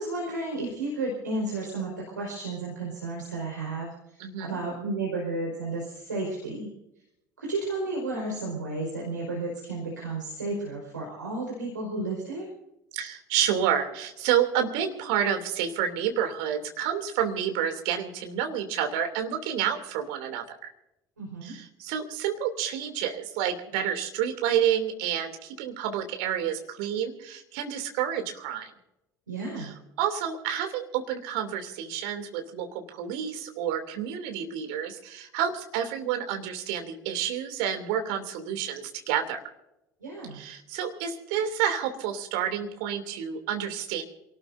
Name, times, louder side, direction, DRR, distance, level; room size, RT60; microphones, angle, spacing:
voice 1, 0.0-3.9 4.4-6.7 7.4-12.5 21.2-21.5 29.3-29.7 40.0-40.4, right 2 dB, 85° right, -2 dB, 4.8 m, -32 dB
voice 2, 4.2-4.6 12.9-20.7 21.4-28.7 29.6-39.4 40.3-44.0, right 9 dB, 60° right, 5 dB, 2.9 m, -29 dB
28.0 x 18.5 x 2.7 m, 0.88 s
figure-of-eight pair, 60°, 10 cm